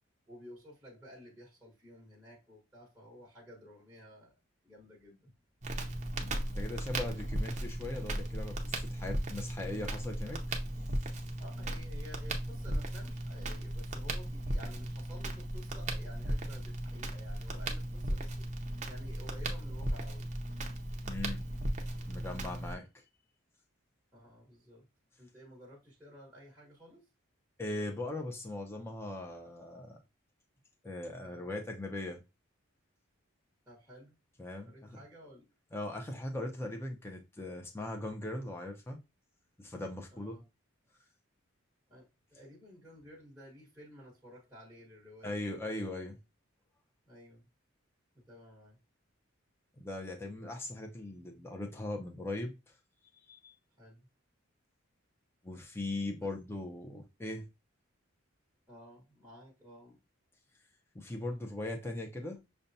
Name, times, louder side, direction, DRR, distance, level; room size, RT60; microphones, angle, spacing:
voice 1, 0.3-4.4 4.6-5.3 11.4-20.3 24.1-24.8 25.2-27.0 31.2-31.5 33.7-34.2 34.6-35.5 40.1-40.5 41.9-45.4 47.0-47.5 48.3-48.8 53.8-54.1 56.2-56.3 58.7-60.0, equal, 5° right, 1.2 m, -53 dB
Crackle, 5.6-22.7, right 1 dB, 35° right, 0.6 m, -36 dB
voice 2, 6.2-10.4 21.1-21.4 21.9-23.0 27.6-30.0 30.8-32.2 34.4-35.0 35.7-39.0 39.6-40.4 45.2-46.2 49.8-52.5 53.2-53.6 55.4-57.5 60.9-62.4, left 2 dB, 10° left, 0.5 m, -39 dB
6.6 x 2.2 x 2.6 m
head